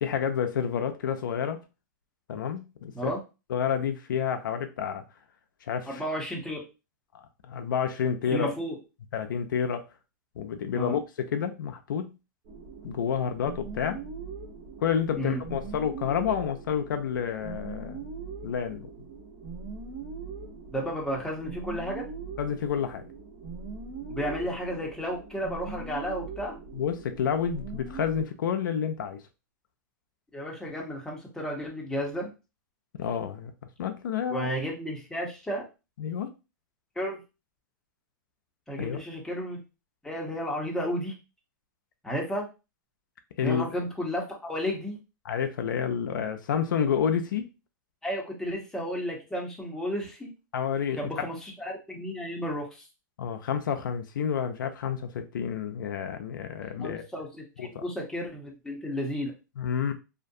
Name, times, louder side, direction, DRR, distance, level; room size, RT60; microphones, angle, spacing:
voice 1, 0.0-1.6 2.3-3.1 3.5-5.0 5.7-6.0 7.1-8.5 9.1-9.8 10.4-12.1 12.8-14.0 14.8-18.0 18.4-18.9 22.4-23.1 26.7-29.2 33.0-33.5 33.8-34.5 36.0-36.3 38.8-39.0 43.4-43.6 45.3-47.5 50.5-51.3 53.2-57.0 57.6-57.8 59.6-59.9, left 7 dB, 80° left, 0.4 m, -29 dB
voice 2, 5.9-6.6 8.3-8.8 10.7-11.0 15.2-15.4 20.7-22.0 24.1-26.5 30.3-32.3 34.3-35.7 37.0-37.2 38.7-39.6 40.0-41.1 42.0-42.5 43.4-45.0 48.0-50.3 50.9-52.9 56.8-59.3, equal, 5° left, 0.8 m, -33 dB
sound 1, 12.4-28.2, right 4 dB, 50° right, 1.1 m, -41 dB
2.4 x 2.2 x 2.6 m
hypercardioid pair, 130°, 10 cm